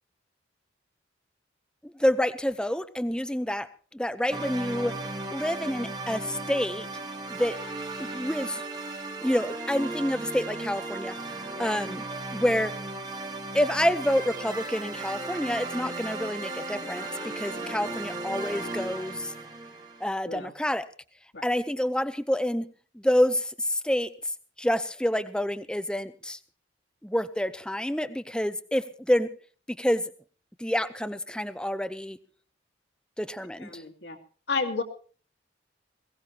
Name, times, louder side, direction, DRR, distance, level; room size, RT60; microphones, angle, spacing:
voice 1, 1.8-5.0 5.3-6.9 7.3-7.6 8.0-8.6 9.2-12.0 12.3-12.7 13.5-17.1 17.4-19.3 20.0-20.9 21.4-22.7 22.9-24.1 24.6-26.4 27.0-29.3 29.7-30.1 30.6-32.2 33.2-33.8, equal, 5° left, 14 dB, 0.7 m, -28 dB
sound 1, 4.3-20.1, right 2 dB, 20° right, 1.7 m, -36 dB
voice 2, 17.5-17.9 20.3-20.5 21.3-21.4 33.6-34.2 34.5-34.8, left 4 dB, 75° left, 6 dB, 2.5 m, -33 dB
21.5 x 17.0 x 2.9 m, 0.41 s
head